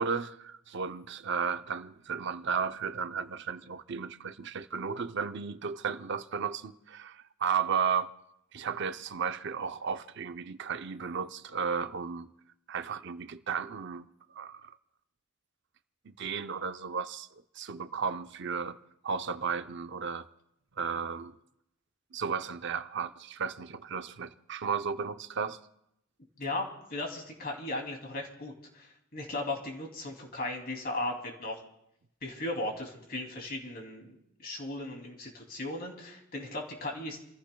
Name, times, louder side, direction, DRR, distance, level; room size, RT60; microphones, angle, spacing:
voice 1, 0.0-8.1 8.5-12.3 12.7-14.1 14.4-14.7 16.0-17.3 17.6-18.8 19.0-20.3 20.8-21.3 22.1-25.6, right 6 dB, 65° right, 0.6 m, -34 dB
voice 2, 26.4-31.6 32.2-34.2 34.4-37.2, left 2 dB, 50° left, 2.7 m, -37 dB
29.5 x 14.5 x 2.3 m
head